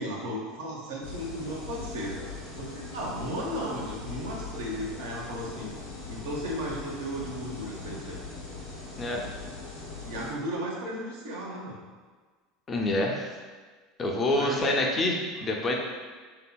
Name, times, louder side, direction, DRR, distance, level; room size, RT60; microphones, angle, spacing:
voice 1, 0.0-5.7 6.1-8.2 8.9-9.1 10.0-11.8 14.2-14.6, equal, 70° right, -3 dB, 0.6 m, -35 dB
sound 1, 1.0-10.3, left 3 dB, 85° left, 0.7 m, -41 dB
voice 2, 12.7-13.3 14.0-15.7, left 1 dB, 30° left, 0 dB, 0.4 m, -27 dB
2.7 x 2.7 x 2.2 m, 1.4 s
hypercardioid pair, 75°, 0 cm